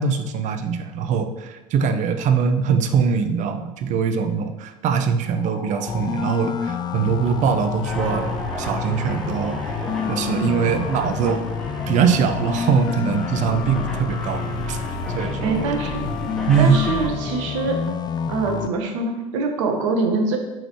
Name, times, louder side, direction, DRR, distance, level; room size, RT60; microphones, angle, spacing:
voice 1, 0.0-9.8 10.1-11.4 11.9-14.8 15.1-15.7 16.5-16.8, right 6 dB, 45° right, 8 dB, 0.8 m, -22 dB
sound 1, 5.2-10.3, equal, 65° left, 2.6 m, -38 dB
sound 2, 5.9-18.7, left 8 dB, 25° left, 0.4 m, -29 dB
sound 3, 7.8-17.1, right 1 dB, 5° left, 2.0 m, -32 dB
voice 2, 15.4-16.0 16.6-17.8 18.3-20.4, right 3 dB, 60° right, 4 dB, 1.3 m, -24 dB
8.8 x 6.2 x 3.2 m, 1.1 s
figure-of-eight pair, 65°, 18 cm